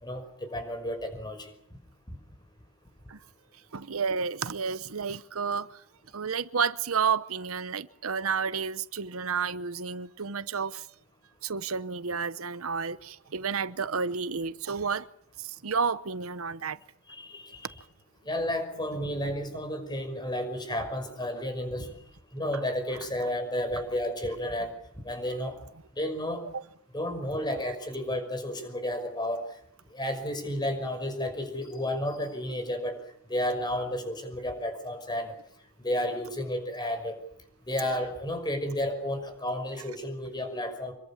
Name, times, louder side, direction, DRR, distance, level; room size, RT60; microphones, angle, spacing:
voice 1, 0.0-1.5 2.1-2.2 17.1-17.7 18.3-21.9 22.3-25.6 26.0-26.4 26.9-29.4 29.9-33.0 33.3-35.3 35.8-37.2 37.7-40.9, left 1 dB, 20° left, 5.8 m, -32 dB
voice 2, 3.7-5.8 6.1-10.9 11.4-15.1 15.4-16.8 26.5-26.6, right 5 dB, 85° right, 0.9 m, -31 dB
26.0 x 23.0 x 7.3 m
head